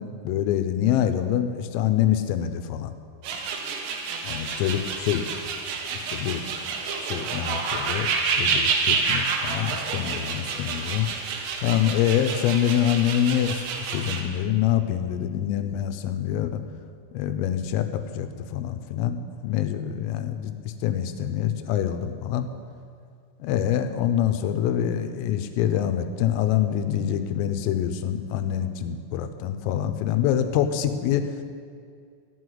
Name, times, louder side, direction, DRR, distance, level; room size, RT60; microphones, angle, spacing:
voice 1, 0.0-2.9 4.2-5.2 5.9-6.4 7.0-8.1 8.4-11.1 11.6-13.6 13.9-16.6 17.1-19.2 19.4-20.6 20.8-22.5 23.4-31.2, left 10 dB, 85° left, 9 dB, 3.4 m, -25 dB
sound 1, 3.2-14.2, right 5 dB, 70° right, 3.0 m, -28 dB
15.0 x 6.4 x 9.5 m, 2.2 s
omnidirectional pair, 5.8 m